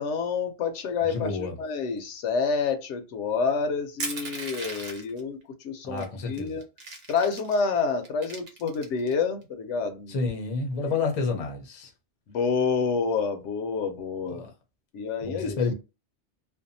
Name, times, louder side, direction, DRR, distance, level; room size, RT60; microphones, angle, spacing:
voice 1, 0.0-5.4 5.6-6.6 7.1-10.2 10.9-11.0 12.3-14.5 14.9-15.6, left 5 dB, 75° left, 0.9 m, -28 dB
voice 2, 1.1-1.6 5.8-6.6 10.1-11.9 14.3-14.5 15.2-15.7, left 4 dB, 40° left, 0.6 m, -29 dB
Crushing, 4.0-5.2 6.0-6.1 6.4-7.6 8.0-9.1, right 3 dB, 60° right, 0.9 m, -37 dB
2.6 x 2.2 x 2.6 m
omnidirectional pair, 1.2 m